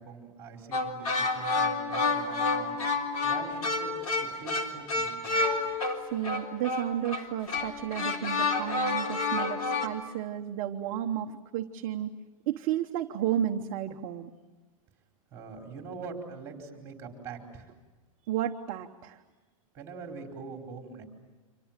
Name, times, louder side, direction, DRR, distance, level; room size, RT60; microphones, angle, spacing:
voice 1, 0.0-2.8 3.2-5.4 15.3-17.7 19.7-21.0, right 4 dB, 15° right, 2 dB, 4.5 m, -43 dB
sound 1, 0.7-9.9, left 3 dB, 90° left, 3.8 m, -29 dB
voice 2, 6.1-12.1 12.5-14.3 18.3-19.2, right 11 dB, 30° right, 3 dB, 1.0 m, -32 dB
29.5 x 26.0 x 7.5 m, 1.2 s
supercardioid pair, 165°, 18 cm